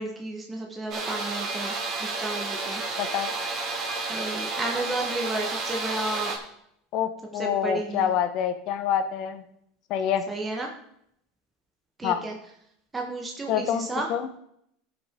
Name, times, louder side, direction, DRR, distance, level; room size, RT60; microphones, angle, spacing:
voice 1, 0.0-1.7 2.0-2.8 4.1-6.3 7.3-8.1 10.3-10.7 12.0-12.4 12.9-14.1, right 2 dB, 15° right, 0 dB, 1.3 m, -32 dB
sound 1, 0.9-6.4, right 3 dB, 35° right, 2.4 m, -31 dB
voice 2, 3.0-3.3 6.9-9.4 9.9-10.2 12.0-12.2 13.5-14.2, left 9 dB, 50° left, 9 dB, 1.1 m, -26 dB
15.0 x 6.0 x 3.7 m, 0.73 s
supercardioid pair, 130°, 0 cm